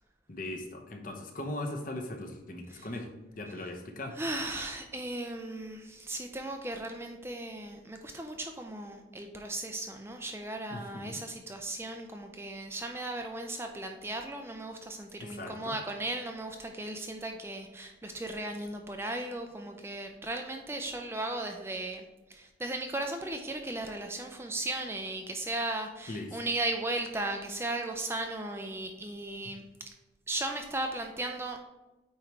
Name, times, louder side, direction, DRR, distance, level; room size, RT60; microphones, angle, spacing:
voice 1, 0.3-3.1 3.4-4.2 10.7-11.2 15.2-15.7 26.1-26.3, left 1 dB, 45° left, 3 dB, 0.9 m, -39 dB
voice 2, 4.2-29.9 30.3-31.6, right 2 dB, 15° right, 4 dB, 0.4 m, -36 dB
8.6 x 3.2 x 4.6 m, 1.1 s
head